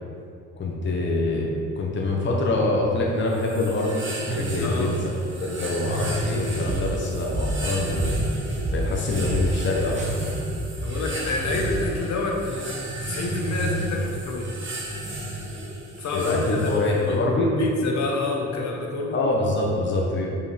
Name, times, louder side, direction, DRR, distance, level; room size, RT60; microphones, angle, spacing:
voice 1, 0.6-5.1 5.4-8.2 8.7-10.2 16.1-17.5 19.1-20.3, left 2 dB, 40° left, -2 dB, 1.1 m, -25 dB
sound 1, 3.3-17.2, right 1 dB, 40° right, 1.6 m, -32 dB
voice 2, 4.6-4.9 10.8-12.7 13.0-14.5 16.0-17.2 17.6-19.2, left 3 dB, 65° left, 0 dB, 1.3 m, -28 dB
sound 2, 6.7-11.9, right 1 dB, 25° right, 1.0 m, -31 dB
5.3 x 5.2 x 5.1 m, 2.6 s
cardioid pair, 90°, 30 cm